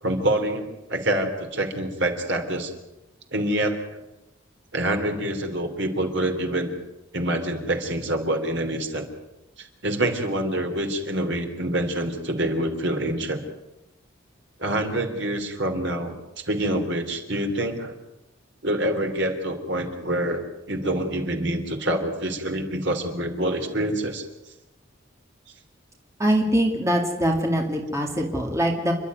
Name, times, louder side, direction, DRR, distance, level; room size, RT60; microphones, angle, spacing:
voice 1, 0.0-2.7 3.3-4.0 4.7-6.7 7.1-9.0 9.6-13.4 14.6-18.0 18.6-20.4 20.7-24.2, right 1 dB, 60° right, 4 dB, 3.3 m, -26 dB
voice 2, 26.2-28.9, equal, 15° right, 1 dB, 2.4 m, -23 dB
29.5 x 12.0 x 9.4 m, 0.98 s
head